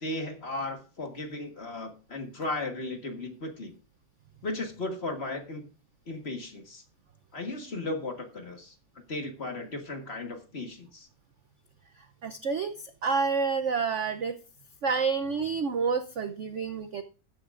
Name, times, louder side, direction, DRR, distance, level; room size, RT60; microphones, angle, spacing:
voice 1, 0.0-3.7 4.4-5.7 6.1-6.8 7.3-8.8 9.1-11.1, left 2 dB, 35° left, 4 dB, 1.5 m, -36 dB
voice 2, 12.2-12.7 13.0-14.4 14.8-17.0, right 5 dB, 75° right, 9 dB, 0.6 m, -28 dB
13.5 x 10.0 x 2.5 m, 0.35 s
omnidirectional pair, 2.2 m